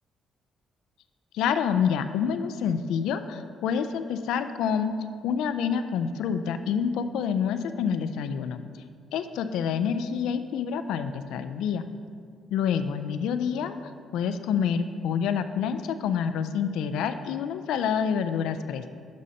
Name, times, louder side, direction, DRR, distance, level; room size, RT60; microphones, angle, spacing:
voice 1, 1.3-4.9 5.2-8.6 9.1-11.8 12.5-13.8 14.1-18.9, left 7 dB, 90° left, 10 dB, 0.4 m, -27 dB
6.4 x 4.2 x 6.2 m, 2.1 s
cardioid pair, 90°, 0 cm